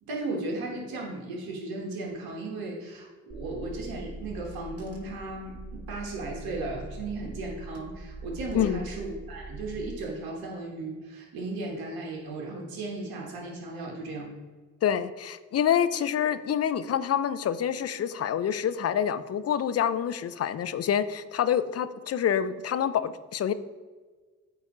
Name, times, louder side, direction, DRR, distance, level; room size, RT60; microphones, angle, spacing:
voice 1, 0.0-14.3, right 2 dB, 75° right, -1 dB, 1.5 m, -36 dB
Car / Engine, 3.3-9.9, right 2 dB, 40° right, 1.6 m, -42 dB
voice 2, 14.8-23.5, left 9 dB, 45° left, 13 dB, 0.5 m, -27 dB
8.5 x 2.9 x 4.9 m, 1.4 s
supercardioid pair, 50°, 36 cm